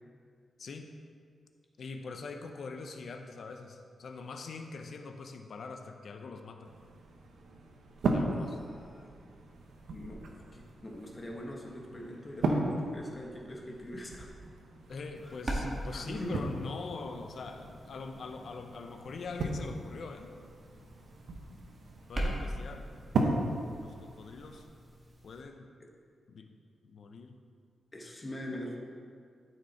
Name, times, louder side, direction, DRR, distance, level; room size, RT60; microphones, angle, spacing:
voice 1, 0.6-0.9 1.8-6.7 8.1-8.6 14.9-20.3 22.1-22.9 23.8-24.7 25.2-25.7 26.3-26.5 26.8-27.4, left 4 dB, 60° left, 5 dB, 0.7 m, -43 dB
sound 1, 6.6-24.6, right 2 dB, 85° right, 1.0 m, -37 dB
voice 2, 8.3-9.1 9.9-10.2 10.5-14.3 15.2-15.3 15.9-16.4 27.9-28.8, equal, 25° left, -1 dB, 1.4 m, -42 dB
sound 2, 15.2-25.4, right 1 dB, 30° right, 1.6 m, -42 dB
12.5 x 6.0 x 4.3 m, 2.2 s
wide cardioid pair, 125°, 0 cm